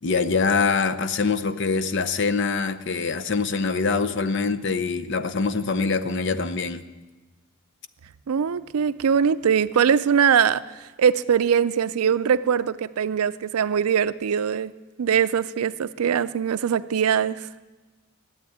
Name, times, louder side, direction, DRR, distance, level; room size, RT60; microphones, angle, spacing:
voice 1, 0.0-6.8, left 4 dB, 55° left, 10 dB, 0.6 m, -24 dB
voice 2, 8.3-10.6 11.0-14.7 15.0-17.5, right 7 dB, 80° right, 16 dB, 0.4 m, -22 dB
12.0 x 8.1 x 9.4 m, 1.2 s
head